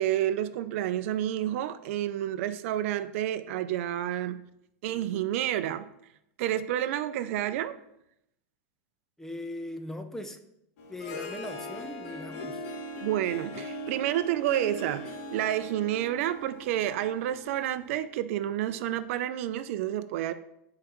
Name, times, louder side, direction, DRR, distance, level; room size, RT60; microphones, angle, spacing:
voice 1, 0.0-4.4 4.8-5.9 6.4-7.8 13.0-20.3, right 12 dB, 65° right, 12 dB, 0.5 m, -29 dB
voice 2, 9.2-10.4 10.9-12.7, left 1 dB, 5° left, 7 dB, 0.6 m, -39 dB
Harp, 10.8-17.9, left 1 dB, 70° left, 1.2 m, -40 dB
11.0 x 4.8 x 3.1 m, 0.80 s
supercardioid pair, 145°, 8 cm